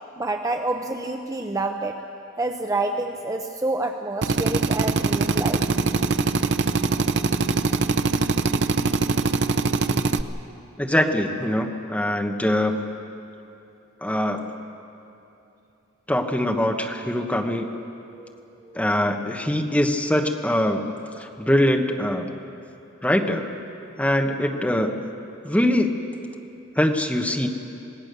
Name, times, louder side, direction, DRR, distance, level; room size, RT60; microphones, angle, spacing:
voice 1, 0.2-2.0 2.4-5.6 18.2-18.3 18.6-18.9, right 2 dB, 15° right, 4 dB, 0.6 m, -28 dB
Drill, 4.2-10.2, right 3 dB, 55° right, 0.7 m, -22 dB
voice 2, 10.8-12.9 14.0-14.4 16.1-17.7 18.7-20.8 21.2-22.3 23.0-23.5 24.0-24.9 25.4-25.9 26.8-27.5, left 1 dB, 5° left, 3 dB, 1.2 m, -23 dB
26.5 x 17.5 x 6.8 m, 2.8 s
head